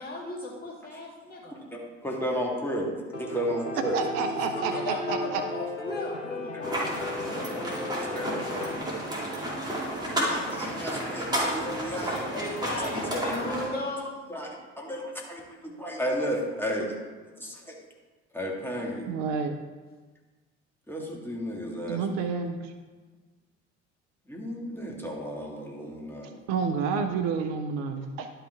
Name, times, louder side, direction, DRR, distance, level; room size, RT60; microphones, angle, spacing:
voice 1, 0.0-1.6 4.5-7.0 12.3-14.1, left 2 dB, 25° left, -2 dB, 2.3 m, -36 dB
voice 2, 1.5-4.5 4.7-4.8 6.5-6.9 8.0-8.3 9.2-9.3 10.0-12.3 13.5-13.6 14.3-16.9 17.4-17.8 18.3-19.1 20.9-22.2 24.3-26.4, equal, 5° left, -1 dB, 1.9 m, -33 dB
Piano, 3.1-8.8, left 2 dB, 90° left, 0.6 m, -35 dB
voice 3, 3.8-5.4 19.1-19.6 21.9-22.7 26.5-28.3, right 5 dB, 60° right, 7 dB, 0.7 m, -29 dB
sound 1, 6.6-13.7, right 1 dB, 10° right, 2.6 m, -31 dB
11.0 x 5.5 x 3.5 m, 1.3 s
figure-of-eight pair, 50°, 34 cm